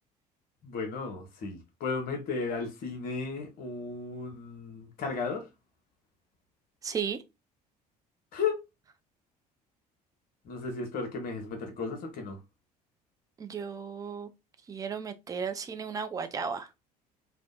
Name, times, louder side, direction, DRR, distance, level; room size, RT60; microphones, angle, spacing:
voice 1, 0.6-5.5 8.3-8.6 10.4-12.4, left 4 dB, 45° left, 0.8 m, -34 dB
voice 2, 6.8-7.2 13.4-14.3 14.7-16.7, right 6 dB, 15° right, 0.4 m, -35 dB
2.7 x 2.0 x 2.2 m
figure-of-eight pair, 60°, 21 cm